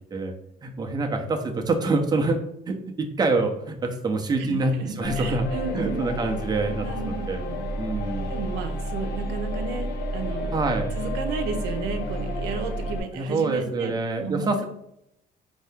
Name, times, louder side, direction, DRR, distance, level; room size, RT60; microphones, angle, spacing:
voice 1, 0.6-2.4 2.7-5.5 5.7-7.4 7.8-8.3 10.5-10.9 13.1-14.7, right 3 dB, 25° right, 4 dB, 0.6 m, -26 dB
voice 2, 4.4-6.0 6.8-7.7 8.3-10.6 10.9-13.9 14.2-14.7, right 5 dB, 90° right, 5 dB, 0.6 m, -33 dB
sound 1, 5.0-13.0, equal, 70° left, 0.7 m, -31 dB
4.3 x 2.8 x 3.4 m, 0.77 s
cardioid pair, 110°, 17 cm